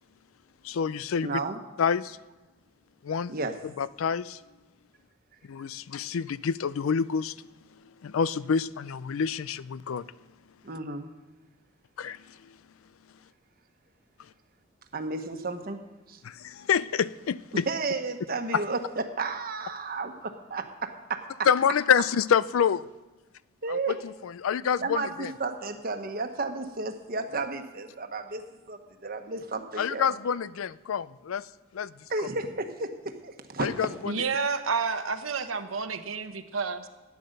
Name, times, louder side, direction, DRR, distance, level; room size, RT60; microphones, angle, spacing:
voice 1, 0.7-1.3 1.8-2.2 3.0-3.3 3.8-4.4 5.5-7.3 8.0-10.0 12.0-12.2 16.4-17.7 18.5-18.6 21.5-22.8 23.7-25.3 29.8-31.4 31.7-31.9 33.6-34.2, left 7 dB, 85° left, 0.4 m, -27 dB
voice 2, 1.2-1.6 3.3-3.5 10.6-11.1 14.9-15.8 16.1-16.2 17.7-21.2 23.6-23.9 24.8-30.1 32.1-33.9, right 3 dB, 45° right, 1.2 m, -33 dB
voice 3, 34.1-36.9, right 5 dB, 85° right, 1.0 m, -30 dB
13.0 x 9.6 x 6.6 m
head